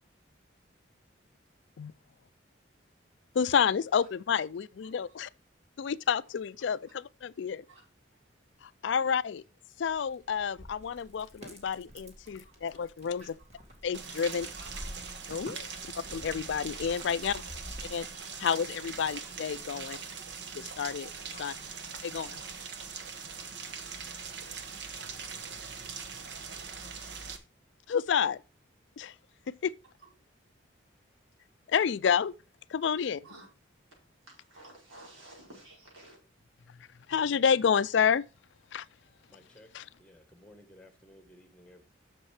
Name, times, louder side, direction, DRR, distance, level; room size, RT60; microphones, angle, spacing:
voice 1, 3.3-5.3 5.8-7.6 8.6-9.4 9.8-13.4 13.8-14.5 15.3-15.7 16.1-17.4 17.9-20.0 20.5-21.1 21.4-21.5 22.0-22.4 27.9-28.4 29.0-29.1 29.5-29.7 31.7-32.3 32.7-33.2 36.7-36.8 37.1-38.3 38.7-38.9 39.7-39.9, left 7 dB, 65° left, 0.4 m, -29 dB
sound 1, 9.9-18.1, equal, 35° right, 1.9 m, -48 dB
voice 2, 12.2-12.8 13.2-13.3 14.4-14.9 17.3-17.4 19.1-19.2 19.8-20.0 21.3-21.6 33.2-33.5 33.9-34.0 34.2-36.2, right 1 dB, 90° right, 5.0 m, -53 dB
Rain, 13.9-27.4, right 5 dB, 60° right, 1.1 m, -42 dB
voice 3, 39.3-39.7 40.0-41.8, left 1 dB, 5° left, 1.4 m, -56 dB
7.1 x 6.7 x 4.8 m
head